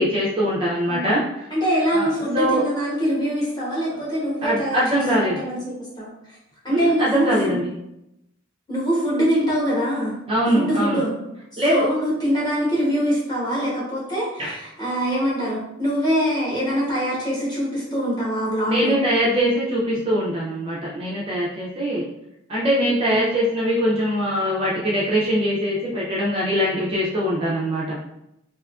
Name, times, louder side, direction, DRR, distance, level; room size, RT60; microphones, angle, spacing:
voice 1, 0.0-1.5 1.9-2.1 2.3-2.6 4.4-5.4 6.7-7.7 10.3-11.0 11.6-11.9 14.4-14.5 18.7-22.0 22.5-28.0, equal, 25° right, -6 dB, 0.4 m, -22 dB
voice 2, 1.5-6.4 6.6-7.6 8.7-10.1 10.5-11.1 11.5-19.0 23.0-23.4, equal, 20° left, -7 dB, 0.9 m, -24 dB
2.7 x 2.4 x 2.2 m, 0.84 s
head